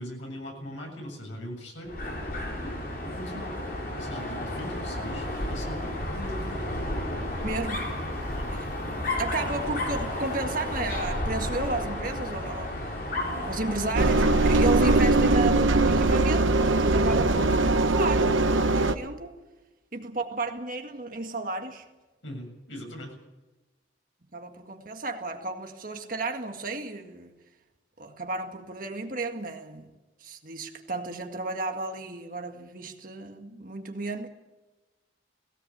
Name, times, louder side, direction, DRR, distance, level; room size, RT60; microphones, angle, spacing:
voice 1, 0.0-1.9 2.6-3.6 3.9-6.6 8.3-8.5 17.1-17.3 22.2-23.1, equal, 75° left, 0 dB, 7.7 m, -40 dB
Dog, 1.9-15.2, left 1 dB, 50° left, 4.3 m, -32 dB
voice 2, 7.4-8.0 8.5-8.7 9.2-12.7 13.2-19.4 19.9-21.9 24.2-27.3 28.0-29.9 30.2-34.3, right 2 dB, 45° right, 5 dB, 1.9 m, -33 dB
Engine, 13.9-18.9, right 2 dB, 90° right, 1.1 m, -21 dB
18.0 x 17.0 x 8.8 m, 1.1 s
head